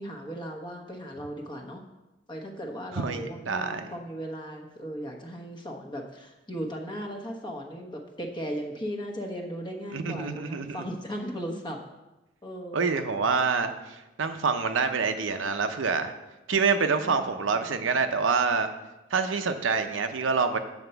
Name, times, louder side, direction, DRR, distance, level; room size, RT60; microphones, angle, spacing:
voice 1, 0.0-1.8 2.3-11.8 12.4-12.9 17.0-18.0, equal, 25° left, 2 dB, 1.1 m, -37 dB
voice 2, 2.9-3.9 9.9-10.8 12.7-16.1 16.5-18.7 19.1-20.6, right 5 dB, 85° right, 7 dB, 0.7 m, -26 dB
8.0 x 4.3 x 6.8 m, 1.0 s
head